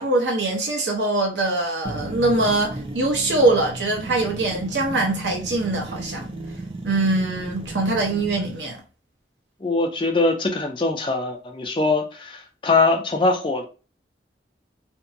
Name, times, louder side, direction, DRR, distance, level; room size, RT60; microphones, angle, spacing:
voice 1, 0.0-6.3 6.8-8.8, right 2 dB, 80° right, 0.9 m, -23 dB
sound 1, 1.8-8.6, right 2 dB, 30° right, 0.4 m, -34 dB
voice 2, 9.6-13.6, left 3 dB, 30° left, 0.4 m, -22 dB
2.6 x 2.2 x 2.6 m
head